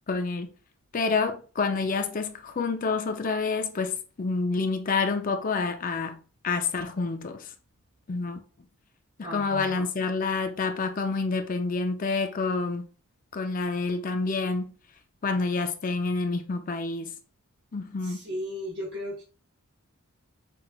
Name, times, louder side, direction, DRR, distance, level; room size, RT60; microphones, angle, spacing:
voice 1, 0.1-0.5 0.9-6.2 6.4-7.5 8.1-8.4 9.2-12.9 13.3-14.7 15.2-17.1 17.7-18.2, left 4 dB, 35° left, 0.4 m, -28 dB
voice 2, 9.2-9.9 18.0-19.2, equal, 50° right, 1.1 m, -35 dB
6.0 x 3.2 x 2.3 m
head